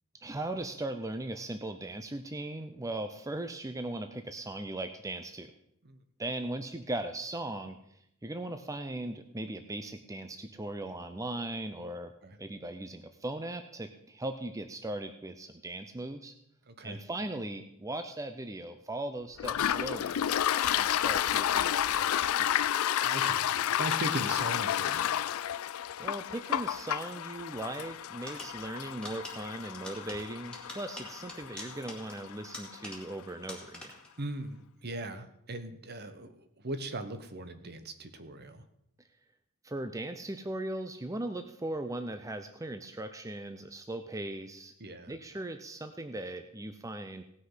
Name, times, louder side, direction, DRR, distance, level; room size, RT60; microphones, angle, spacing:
voice 1, 0.2-5.5 6.2-7.8 8.2-12.1 12.4-16.3 16.8-20.2 20.7-22.5 26.0-34.0 39.6-44.7 45.1-47.3, right 1 dB, 15° right, 8 dB, 0.6 m, -38 dB
voice 2, 16.7-17.0 23.0-25.1 34.2-38.6 44.8-45.1, right 1 dB, 50° right, 10 dB, 1.1 m, -39 dB
Toilet flush, 19.4-32.8, left 10 dB, 85° left, 0.4 m, -31 dB
sound 1, 28.3-33.2 33.5-34.2, left 1 dB, 5° left, 2.2 m, -46 dB
17.5 x 6.3 x 5.7 m, 0.76 s
head